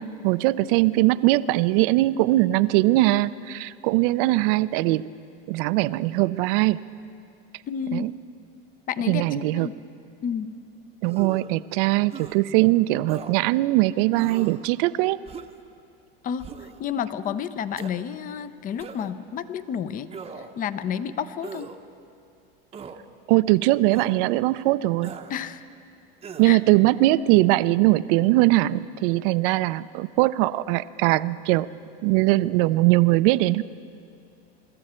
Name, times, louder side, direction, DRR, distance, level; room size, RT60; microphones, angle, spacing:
voice 1, 0.0-5.1 5.5-6.8 7.9-8.1 9.1-9.7 11.0-15.2 23.3-25.1 26.4-31.7 32.0-33.6, right 18 dB, 60° right, 16 dB, 0.5 m, -21 dB
voice 2, 7.7-8.1 8.9-9.7 10.2-10.5 16.2-20.1 20.4-21.7 25.3-25.6 26.4-26.6, left 8 dB, 30° left, 14 dB, 0.5 m, -30 dB
sound 1, 11.0-11.5 12.1-12.4 13.1-13.3 14.1-14.6 15.3-15.6 16.4-16.8 17.8-17.9 18.8-19.2 20.1-20.6 21.4-21.8 22.7-23.0 23.9-24.2 25.0-25.3 26.2-26.6, right 6 dB, 20° right, 0.8 m, -39 dB
23.5 x 13.5 x 4.4 m, 2.5 s
supercardioid pair, 120°, 30 cm